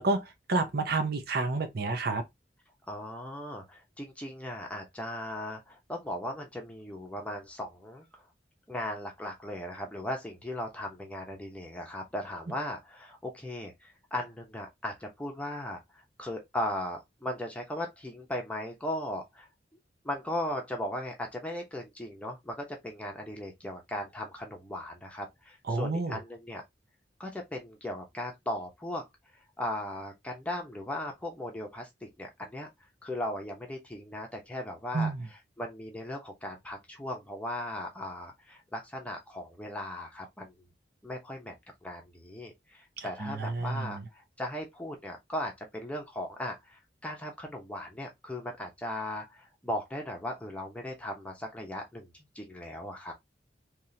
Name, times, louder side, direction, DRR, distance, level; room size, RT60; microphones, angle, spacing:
voice 1, 0.0-2.2 25.7-26.2 34.9-35.3 43.0-44.1, right 3 dB, 60° right, 0.8 m, -30 dB
voice 2, 2.9-8.1 8.7-19.5 20.0-26.6 27.2-29.1 29.6-32.7 33.0-40.5 41.0-41.5 41.8-53.1, left 1 dB, 10° left, 0.8 m, -37 dB
3.6 x 3.0 x 2.7 m
head